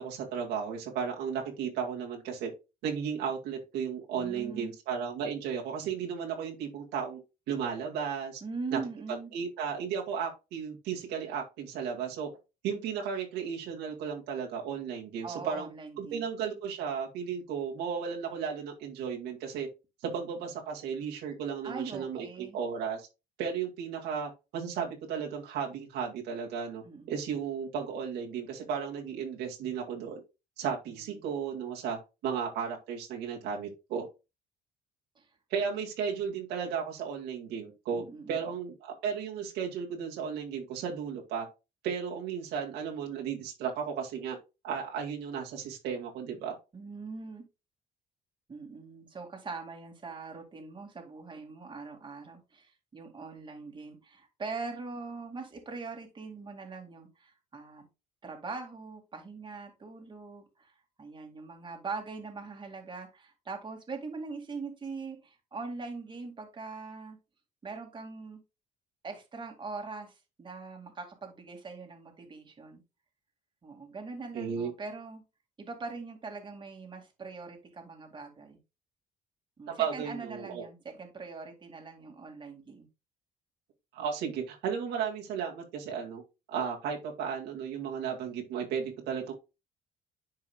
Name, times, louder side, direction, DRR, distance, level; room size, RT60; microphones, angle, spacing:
voice 1, 0.0-2.5 2.8-7.2 7.5-8.4 8.7-8.8 9.3-12.3 12.6-15.7 16.0-19.7 20.0-23.1 23.4-30.2 30.6-34.1 35.5-38.0 38.3-41.5 41.8-44.4 44.6-46.5 74.3-74.7 79.7-80.7 83.9-86.2 86.5-89.3, right 7 dB, 85° right, 2.0 m, -34 dB
voice 2, 4.2-4.7 8.4-9.3 15.2-16.3 21.6-22.6 26.8-27.2 30.9-31.3 35.2-35.3 37.9-38.4 46.7-47.4 48.5-57.9 58.2-67.2 67.6-68.4 69.0-72.8 73.6-75.2 75.6-78.6 79.6-82.9, right 4 dB, 30° right, 2.0 m, -42 dB
10.5 x 4.8 x 2.2 m
cardioid pair, 110°, 17 cm